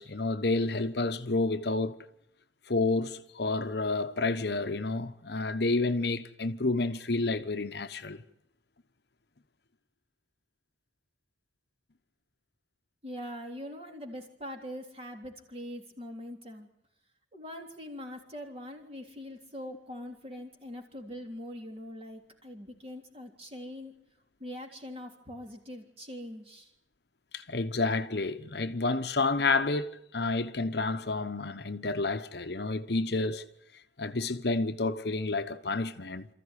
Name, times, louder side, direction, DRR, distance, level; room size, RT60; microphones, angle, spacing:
voice 1, 0.0-2.0 2.7-8.2 27.3-33.4 34.0-36.3, left 3 dB, 60° left, 1.0 m, -30 dB
voice 2, 13.0-16.7 17.3-23.9 24.4-26.7, left 1 dB, 30° right, 3.5 m, -42 dB
27.5 x 14.5 x 10.0 m
head